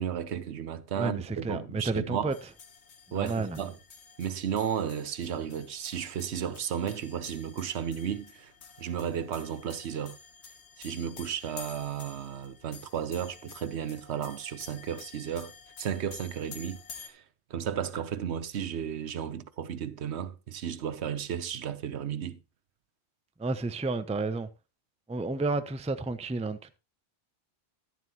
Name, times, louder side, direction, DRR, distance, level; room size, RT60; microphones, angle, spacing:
voice 1, 0.0-2.3 3.1-3.8 4.2-8.5 8.8-10.2 10.8-15.5 15.8-17.2 17.5-22.4, right 8 dB, 80° right, 1.1 m, -34 dB
voice 2, 1.0-2.3 3.1-3.6 23.4-24.5 25.1-26.8, right 3 dB, 10° right, 0.4 m, -31 dB
sound 1, 2.3-17.1, left 6 dB, 90° left, 1.4 m, -50 dB
11.0 x 11.0 x 2.9 m
omnidirectional pair, 1.1 m